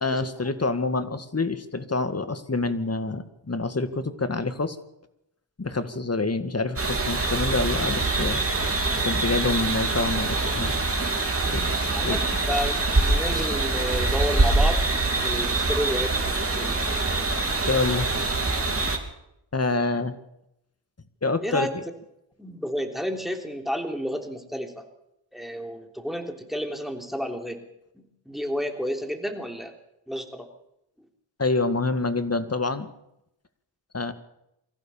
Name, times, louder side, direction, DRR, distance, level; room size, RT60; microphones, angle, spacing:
voice 1, 0.0-4.8 5.6-8.4 9.0-10.7 11.5-11.7 12.0-12.2 17.6-18.2 19.5-20.2 21.2-21.8 31.4-32.9 33.9-34.1, left 3 dB, 35° left, 10 dB, 1.9 m, -27 dB
sound 1, 6.8-19.0, right 2 dB, 30° right, 3.3 m, -24 dB
voice 2, 11.9-14.8 15.2-17.2 21.4-21.7 22.4-24.9 25.3-27.6 27.9-29.7 30.1-30.5, equal, ahead, 5 dB, 3.3 m, -31 dB
24.0 x 15.0 x 7.2 m, 0.83 s
cardioid pair, 70°, 45 cm